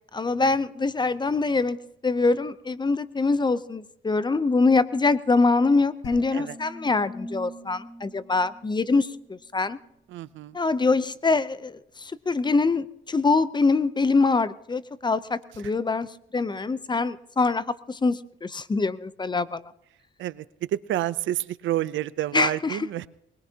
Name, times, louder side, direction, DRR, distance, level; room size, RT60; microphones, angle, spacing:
voice 1, 0.1-1.8 2.0-9.8 10.5-16.1 16.3-19.6 22.3-22.8, left 3 dB, 20° left, 16 dB, 0.7 m, -24 dB
sound 1, 6.0-9.4, left 1 dB, 80° left, 4.8 m, -41 dB
voice 2, 10.1-10.6 20.2-23.1, right 13 dB, 75° right, 17 dB, 0.6 m, -29 dB
21.5 x 21.0 x 2.9 m, 0.76 s
cardioid pair, 90°, 20 cm